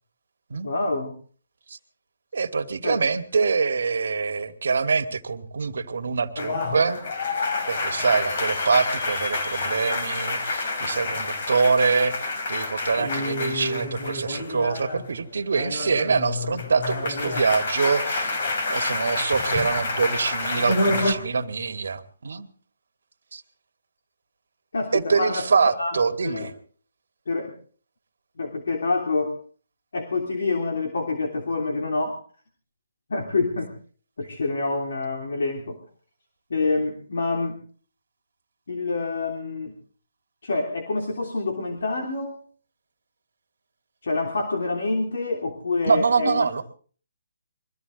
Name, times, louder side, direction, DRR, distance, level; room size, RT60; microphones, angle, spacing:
voice 1, 0.6-1.1 2.8-3.0 13.0-13.1 24.7-25.5 25.8-26.5 27.3-27.5 28.4-29.4 29.9-32.2 33.1-33.7 34.2-35.8 36.5-37.6 38.7-39.7 40.4-42.4 44.0-46.6, left 3 dB, 70° left, 2 dB, 3.3 m, -27 dB
voice 2, 2.3-7.0 7.7-12.1 12.5-18.3 18.7-22.5 23.3-23.4 24.9-26.5 45.9-46.6, right 5 dB, 70° right, 8 dB, 1.7 m, -24 dB
sound 1, 6.4-15.1 15.4-21.1, left 2 dB, 45° left, 3.6 m, -28 dB
23.0 x 15.0 x 3.9 m, 0.42 s
hypercardioid pair, 165°, 0 cm